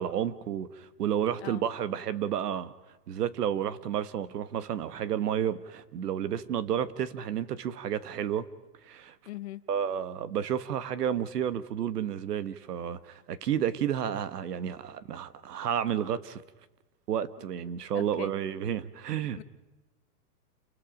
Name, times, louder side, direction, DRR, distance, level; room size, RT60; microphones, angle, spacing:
voice 1, 0.0-2.7 3.1-8.5 8.8-9.1 9.7-16.4 17.1-19.4, right 9 dB, 75° right, 1.4 m, -31 dB
voice 2, 9.3-9.6 17.9-18.3 19.4-19.5, left 15 dB, 45° left, 0.8 m, -40 dB
29.5 x 20.0 x 5.2 m
hypercardioid pair, 165°, 47 cm